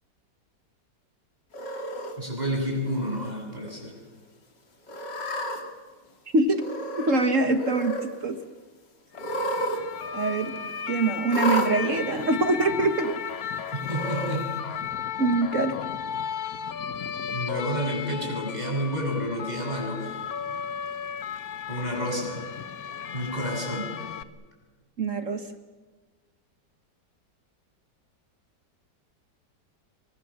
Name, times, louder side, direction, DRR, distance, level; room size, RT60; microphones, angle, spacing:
Cat, 1.5-2.1 2.9-3.3 3.7-3.8 4.9-5.6 6.6-7.2 7.5-8.1 9.1-9.8 10.1-10.2 11.3-11.7 12.6-12.7 13.8-14.4, equal, 80° left, 3.6 m, -30 dB
voice 1, 2.2-3.9 13.7-14.5 17.3-20.1 21.7-22.4 23.1-23.9, equal, 25° right, 1 dB, 7.7 m, -30 dB
voice 2, 7.0-8.4 10.1-10.6 10.9-13.2 15.2-15.8 25.0-25.4, right 3 dB, 50° right, 8 dB, 1.7 m, -24 dB
sound 1, 9.2-24.2, left 8 dB, 60° left, 1.4 m, -35 dB
27.5 x 23.5 x 7.4 m, 1.3 s
omnidirectional pair, 1.9 m